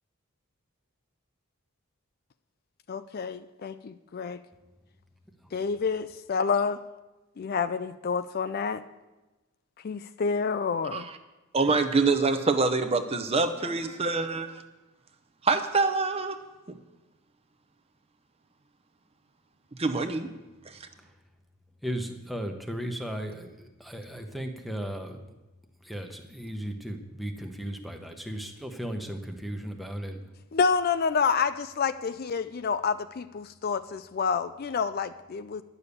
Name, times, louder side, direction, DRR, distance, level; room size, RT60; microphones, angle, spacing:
voice 1, 2.9-4.4 5.5-6.8 7.4-8.8 9.8-11.1 30.5-35.6, left 5 dB, 45° left, 12 dB, 0.4 m, -28 dB
voice 2, 11.5-14.6 15.4-16.4 16.7-16.8 19.7-20.3 20.7-20.9, right 3 dB, 25° right, 8 dB, 0.7 m, -26 dB
voice 3, 21.8-25.3 25.8-30.2, equal, ahead, 4 dB, 0.9 m, -36 dB
11.0 x 7.0 x 8.3 m, 1.1 s
head